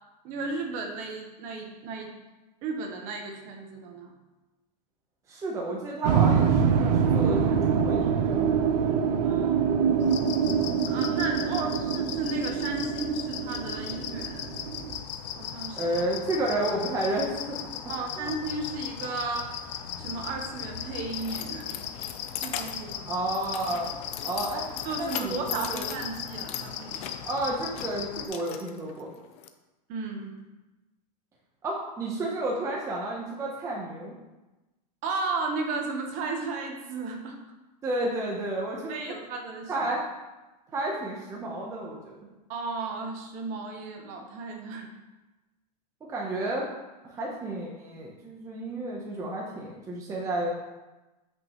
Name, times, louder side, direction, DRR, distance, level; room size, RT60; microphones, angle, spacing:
voice 1, 0.2-2.1 2.6-4.1 9.2-9.6 10.9-14.5 15.4-16.0 17.9-21.8 22.4-23.2 24.8-27.0 29.9-30.3 35.0-37.4 38.9-39.7 42.5-44.9, right 3 dB, 40° right, 2 dB, 1.2 m, -34 dB
voice 2, 5.3-8.5 15.8-17.6 18.1-18.3 23.1-23.9 24.2-24.7 25.0-25.9 27.2-29.1 31.6-34.1 37.8-38.9 39.7-40.0 40.7-42.2 46.1-46.7 47.0-50.5, right 1 dB, 15° right, -2 dB, 0.9 m, -31 dB
sound 1, 6.0-15.0, right 7 dB, 75° right, 0.8 m, -25 dB
sound 2, 10.0-28.3, left 9 dB, 85° left, 0.8 m, -38 dB
Keys jangling, 20.5-29.5, left 10 dB, 30° left, 0.5 m, -40 dB
8.6 x 5.5 x 3.1 m, 1.1 s
supercardioid pair, 160°, 21 cm